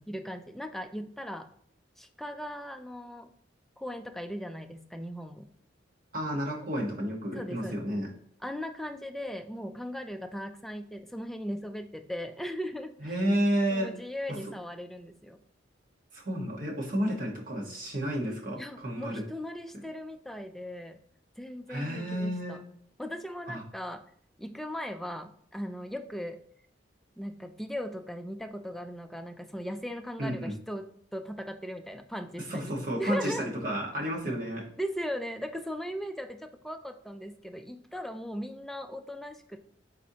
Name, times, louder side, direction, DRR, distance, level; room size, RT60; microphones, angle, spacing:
voice 1, 0.1-1.5 2.0-3.3 3.8-5.5 7.3-7.8 8.4-13.2 13.7-15.4 18.5-21.0 21.4-22.6 23.0-24.0 24.4-26.4 27.2-33.5 34.8-39.6, equal, ahead, 6 dB, 0.3 m, -38 dB
voice 2, 6.1-8.1 13.0-13.9 16.1-19.2 21.7-22.6 23.5-23.6 30.2-30.5 32.5-34.6, equal, 45° right, -1 dB, 1.1 m, -31 dB
4.3 x 4.1 x 2.7 m, 0.64 s
head